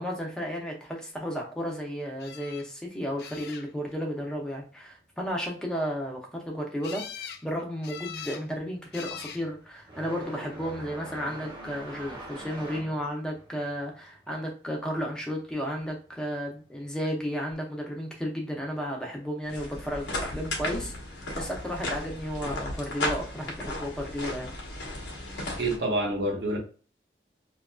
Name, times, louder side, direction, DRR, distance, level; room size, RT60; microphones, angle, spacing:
voice 1, 0.0-24.6, equal, 5° left, 0 dB, 0.6 m, -33 dB
sound 1, 2.2-2.6 3.2-3.9 6.8-7.4 7.8-8.4 8.9-9.4 10.3-10.8 17.0-17.2 17.5-17.6, left 8 dB, 65° left, 0.4 m, -42 dB
sound 2, 7.3-7.6 7.9-16.2 16.5-17.6 18.5-18.6 19.5-19.6 21.3-21.4, right 1 dB, 25° right, 0.8 m, -44 dB
sound 3, 19.4-25.8, left 1 dB, 90° left, 0.9 m, -35 dB
voice 2, 25.5-26.6, right 1 dB, 80° right, 0 dB, 0.9 m, -27 dB
2.8 x 2.5 x 2.2 m, 0.37 s
head